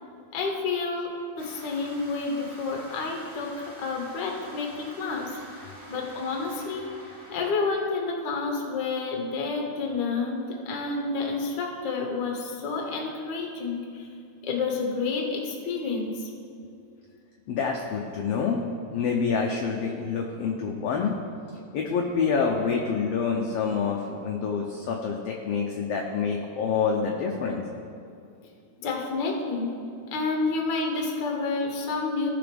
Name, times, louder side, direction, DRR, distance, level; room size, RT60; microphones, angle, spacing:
voice 1, 0.3-6.9 7.3-14.1 14.4-16.3 28.8-29.7 30.1-32.3, left 4 dB, 50° left, 0 dB, 1.5 m, -29 dB
sound 1, 1.4-7.5, right 1 dB, 10° right, 2.4 m, -47 dB
voice 2, 17.5-21.2 21.7-27.6, left 5 dB, 70° left, 0 dB, 1.6 m, -27 dB
17.0 x 5.9 x 3.5 m, 2.4 s
omnidirectional pair, 3.4 m